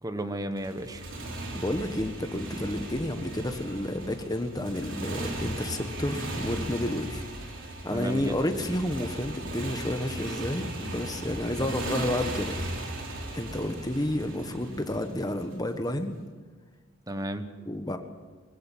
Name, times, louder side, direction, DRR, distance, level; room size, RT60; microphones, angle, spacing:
voice 1, 0.0-1.1 7.9-8.4 11.6-11.7 17.1-17.5, right 1 dB, 20° right, 8 dB, 1.2 m, -33 dB
Motorcycle, 0.6-15.7, right 1 dB, 65° right, 3.8 m, -37 dB
voice 2, 1.5-7.2 7.8-12.5 13.3-16.1 17.7-18.0, left 1 dB, 20° left, 7 dB, 1.4 m, -30 dB
22.0 x 16.0 x 7.4 m, 1.4 s
head